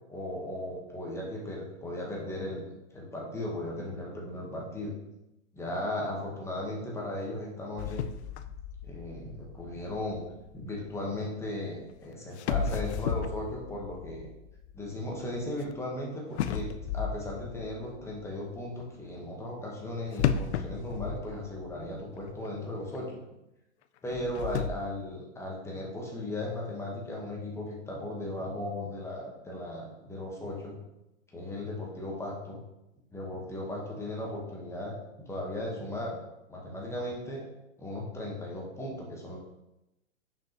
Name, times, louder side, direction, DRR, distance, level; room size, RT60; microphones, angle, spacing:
voice 1, 0.1-2.6 2.9-4.9 5.5-8.1 8.8-10.2 10.5-14.3 14.7-16.7 16.9-23.2 24.0-30.8 31.3-32.6 33.1-35.0 35.2-36.2 36.5-37.5 37.8-39.4, left 1 dB, 5° left, -2 dB, 1.2 m, -36 dB
sound 1, 7.8-10.9 11.9-12.0 12.4-15.7 16.4-18.3 20.2-21.9 22.2-22.3 22.9-23.0 24.0-24.7, left 8 dB, 60° left, 0.5 m, -34 dB
5.9 x 5.4 x 3.0 m, 0.92 s
hypercardioid pair, 135°, 38 cm